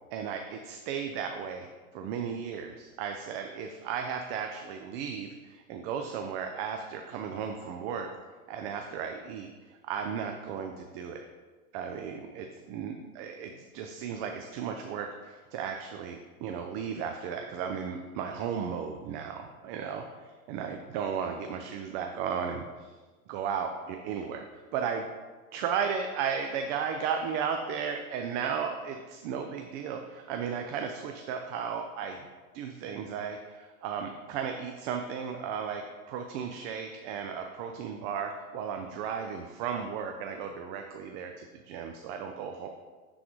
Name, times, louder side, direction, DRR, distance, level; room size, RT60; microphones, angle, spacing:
voice 1, 0.1-8.1 8.5-9.5 9.8-11.2 11.7-20.0 20.5-22.7 23.3-25.1 25.5-32.2 32.5-42.7, right 7 dB, 45° right, 4 dB, 0.5 m, -35 dB
9.6 x 3.9 x 3.1 m, 1.4 s
hypercardioid pair, 115°, 43 cm